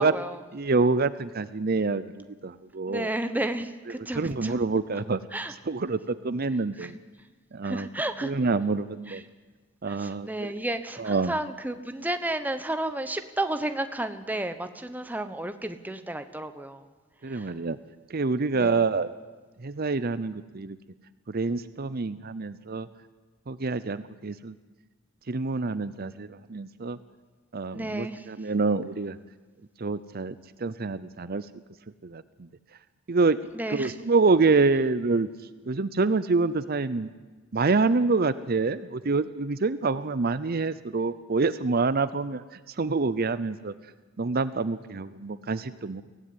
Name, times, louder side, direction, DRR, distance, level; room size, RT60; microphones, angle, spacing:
voice 1, 0.0-0.3 2.9-4.6 5.3-5.5 6.8-6.9 7.6-8.3 9.1-9.2 9.9-16.8 17.3-17.4 18.5-18.8 27.7-28.2 33.5-33.9, right 1 dB, 10° right, 9 dB, 1.1 m, -32 dB
voice 2, 0.5-3.1 3.9-5.2 5.5-7.0 7.5-7.9 8.2-9.2 9.8-10.5 11.0-11.3 17.2-17.8 18.1-19.1 19.6-20.8 21.3-22.9 23.5-24.5 25.3-27.0 27.5-29.2 29.8-31.5 32.0-32.2 33.1-33.4 33.7-35.3 35.7-37.1 37.5-43.7 44.2-46.0, right 3 dB, 50° right, 14 dB, 0.7 m, -26 dB
23.5 x 16.5 x 9.8 m, 1.3 s
head